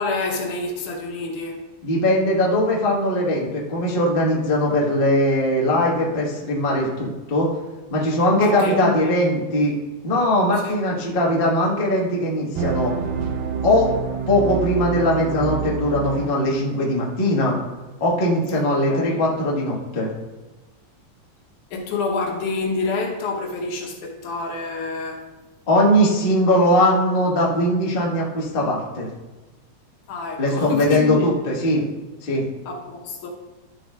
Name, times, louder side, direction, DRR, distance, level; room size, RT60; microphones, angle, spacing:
voice 1, 0.0-1.6 8.4-9.1 10.6-10.7 18.6-19.2 21.7-25.3 30.1-31.3 32.7-33.3, left 3 dB, 75° left, 2.5 m, -27 dB
voice 2, 1.8-7.5 7.9-9.7 10.0-12.9 13.6-13.9 14.3-17.6 18.0-20.1 25.7-29.1 30.4-31.8 32.2-32.4, left 1 dB, 55° left, 0.5 m, -20 dB
sound 1, 12.5-16.5, right 8 dB, 85° right, 2.2 m, -27 dB
12.5 x 6.7 x 2.4 m
omnidirectional pair, 3.6 m